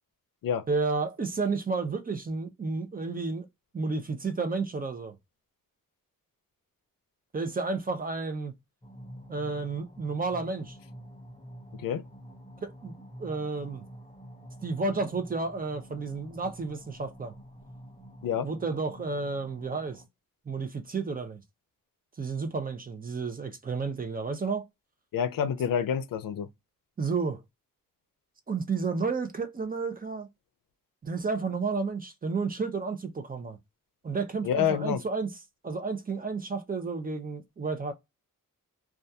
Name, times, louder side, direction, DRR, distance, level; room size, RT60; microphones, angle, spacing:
voice 1, 0.7-3.5 3.7-5.1 7.3-8.5 9.3-10.8 12.6-12.9 13.2-13.8 14.6-17.4 18.4-20.0 20.5-21.4 22.2-24.7 27.0-27.4 28.5-30.3 31.0-33.6 34.0-35.3 35.6-37.9, right 4 dB, 25° right, 0.4 m, -31 dB
sound 1, 8.8-20.1, equal, 20° left, 0.6 m, -48 dB
voice 2, 25.1-26.5 34.4-35.0, left 8 dB, 85° left, 0.5 m, -28 dB
2.3 x 2.2 x 2.6 m
wide cardioid pair, 160°, 33 cm